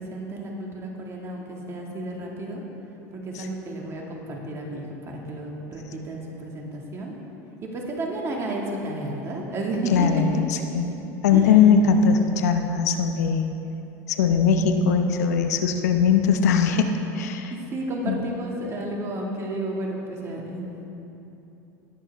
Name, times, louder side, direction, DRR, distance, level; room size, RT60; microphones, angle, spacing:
voice 1, 0.0-2.6 3.1-7.1 7.6-10.1 10.5-10.8 11.3-11.6 17.5-20.9, right 2 dB, 35° right, -1 dB, 2.2 m, -32 dB
voice 2, 9.9-10.9 11.2-13.5 14.1-17.5 18.1-18.2, left 6 dB, 90° left, 6 dB, 0.8 m, -20 dB
19.5 x 7.6 x 3.6 m, 3.0 s
supercardioid pair, 110°, 9 cm